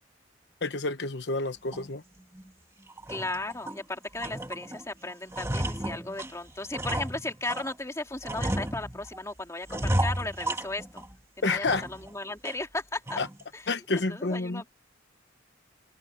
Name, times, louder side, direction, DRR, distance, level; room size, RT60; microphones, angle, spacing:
voice 1, 0.6-2.0 11.4-11.8 13.2-13.3 13.7-14.6, left 3 dB, 65° left, 1.0 m, -29 dB
sound 1, 1.7-1.9 2.3-2.5 2.9-3.8 4.2-4.8 5.1-7.7 8.2-9.2 9.7-11.1 11.5-12.1 12.4-12.5 13.1-13.4, right 1 dB, 15° right, 1.7 m, -33 dB
voice 2, 3.1-11.0 11.4-13.2 13.5-13.7 13.9-14.8, left 2 dB, 15° left, 2.5 m, -36 dB
head